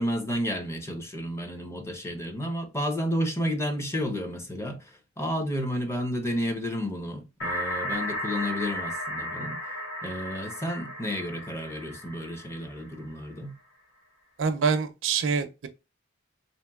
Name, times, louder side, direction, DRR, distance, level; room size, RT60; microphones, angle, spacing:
voice 1, 0.0-9.6 10.0-13.6, equal, 15° left, 0.5 m, -31 dB
sound 1, 7.4-13.1, equal, 70° left, 1.3 m, -34 dB
voice 2, 14.4-15.7, right 5 dB, 65° right, 0.5 m, -25 dB
2.9 x 2.8 x 2.2 m
head